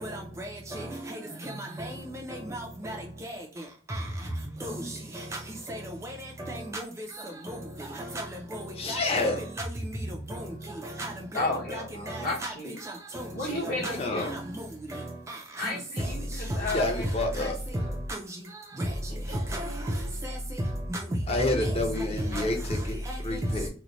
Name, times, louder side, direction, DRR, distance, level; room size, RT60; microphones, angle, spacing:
voice 1, 0.4-0.9 1.8-1.9 2.5-3.0 4.6-4.9 6.5-6.8 7.5-7.6 8.1-8.2 8.9-9.0 9.6-9.7 10.3-10.4 11.0-11.1 11.7-11.8 12.1-12.5 13.1-13.2 13.8-13.9 14.2-14.3 15.6-15.7 16.7-16.8 19.5-19.6 20.9-21.0 22.3-22.4, right 1 dB, 15° right, 0.4 m, -34 dB
voice 2, 8.8-9.4 14.0-14.3 16.6-17.6 21.3-23.7, left 2 dB, 35° left, 0.6 m, -29 dB
voice 3, 11.3-12.8 13.3-14.3 15.6-17.1 17.4-17.9 19.5-20.1, left 2 dB, 55° left, 1.0 m, -34 dB
3.0 x 2.0 x 3.8 m
head